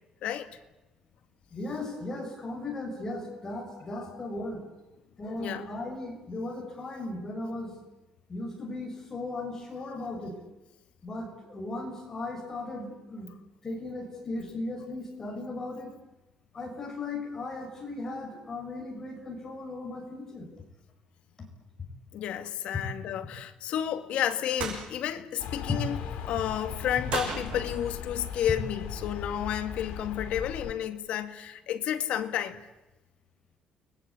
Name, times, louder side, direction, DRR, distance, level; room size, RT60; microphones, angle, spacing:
voice 1, 1.5-4.6 5.2-7.7 8.3-10.4 11.0-13.3 13.6-15.9 16.5-20.5, left 2 dB, 25° left, 6.4 m, -37 dB
voice 2, 5.2-5.7 22.1-26.0 26.2-32.6, left 10 dB, 65° left, 2.1 m, -31 dB
sound 1, 24.6-24.8 27.1-28.0, right 6 dB, 65° right, 7.5 m, -34 dB
sound 2, 25.4-30.7, left 7 dB, 85° left, 4.8 m, -38 dB
30.0 x 22.0 x 8.5 m
cardioid pair, 175°, 2 cm